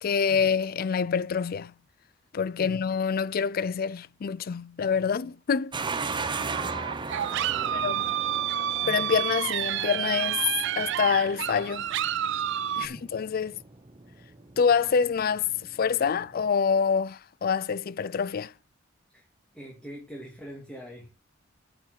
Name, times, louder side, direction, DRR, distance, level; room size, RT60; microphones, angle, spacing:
voice 1, 0.0-1.7 2.3-5.7 7.7-8.1 8.9-11.9 12.7-13.6 14.6-18.5, left 6 dB, 45° left, 0.4 m, -26 dB
voice 2, 2.6-2.9 4.8-4.9 7.5-7.9 8.8-9.1 12.8-13.1 19.1-19.2 19.5-21.1, equal, 5° left, 2.1 m, -44 dB
sound 1, 5.7-16.5, right 4 dB, 25° right, 0.6 m, -38 dB
sound 2, 6.2-12.9, right 11 dB, 65° right, 0.4 m, -29 dB
8.7 x 5.2 x 5.8 m
head